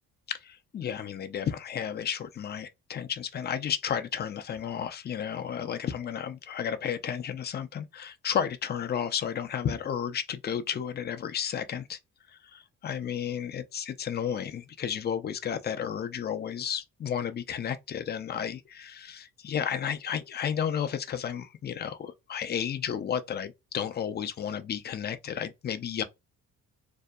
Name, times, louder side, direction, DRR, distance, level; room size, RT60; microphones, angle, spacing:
voice 1, 0.3-12.0 12.3-26.0, left 8 dB, 35° left, 0.4 m, -32 dB
2.7 x 2.0 x 2.2 m
cardioid pair, 90°, 30 cm